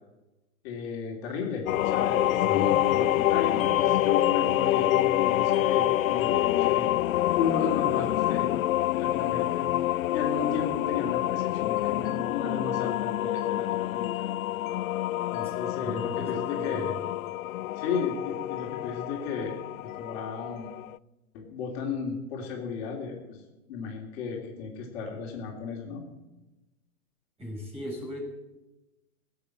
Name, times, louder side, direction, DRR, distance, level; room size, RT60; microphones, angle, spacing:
voice 1, 0.6-6.9 7.4-8.5 8.9-9.7 10.1-14.3 15.3-17.0 17.8-20.7 21.3-23.4 23.7-26.0, left 6 dB, 45° left, -1 dB, 3.3 m, -34 dB
sound 1, 1.7-21.0, left 14 dB, 70° left, 0.5 m, -27 dB
voice 2, 2.4-2.8 15.8-17.0 27.4-28.2, left 1 dB, 15° right, -1 dB, 5.9 m, -37 dB
17.0 x 8.2 x 7.9 m, 1.0 s
hypercardioid pair, 125°, 42 cm